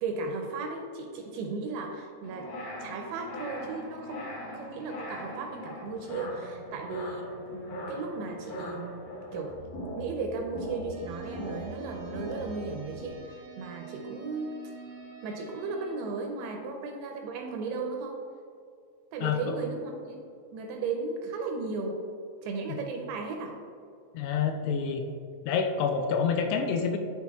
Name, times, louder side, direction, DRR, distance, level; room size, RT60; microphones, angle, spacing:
voice 1, 0.0-2.5 2.8-9.1 9.3-9.5 10.0-14.6 15.2-18.2 19.1-20.2 20.5-22.0 22.4-23.5, right 4 dB, 80° right, 2 dB, 2.4 m, -35 dB
sound 1, 2.2-13.1, equal, 65° left, 2.7 m, -40 dB
sound 2, 10.9-15.9, right 3 dB, 65° right, 1.6 m, -47 dB
voice 2, 24.1-25.1 25.5-27.0, left 6 dB, 85° left, 5 dB, 2.6 m, -27 dB
12.0 x 4.3 x 2.3 m, 2.4 s
omnidirectional pair, 4.9 m